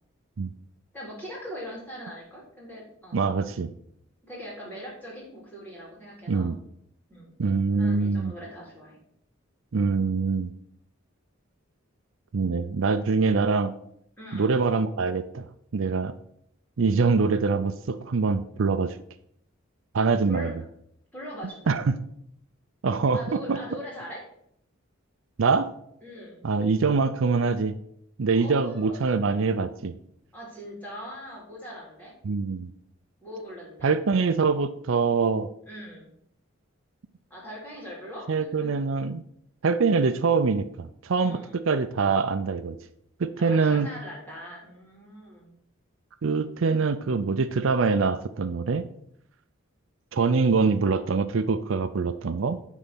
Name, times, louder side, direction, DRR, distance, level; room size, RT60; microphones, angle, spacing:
voice 1, 0.9-3.3 4.2-6.5 7.1-7.3 7.7-9.0 14.2-14.5 20.3-20.5 21.1-21.7 23.1-24.2 26.0-26.4 28.3-29.0 30.3-32.1 33.2-33.9 35.7-36.1 37.3-38.7 41.2-41.6 43.4-45.5, equal, 10° left, -4 dB, 3.3 m, -41 dB
voice 2, 3.1-3.7 6.3-6.6 7.4-8.3 9.7-10.5 12.3-13.7 14.3-15.5 15.7-16.1 16.8-19.0 19.9-20.5 21.7-21.9 22.8-23.2 23.5-23.6 25.4-25.7 26.4-27.8 28.2-29.9 32.2-32.7 33.8-35.5 38.3-39.2 39.6-42.8 43.2-43.9 46.2-48.9 50.1-52.6, right 4 dB, 65° right, 11 dB, 0.5 m, -24 dB
9.9 x 4.1 x 5.9 m, 0.70 s
head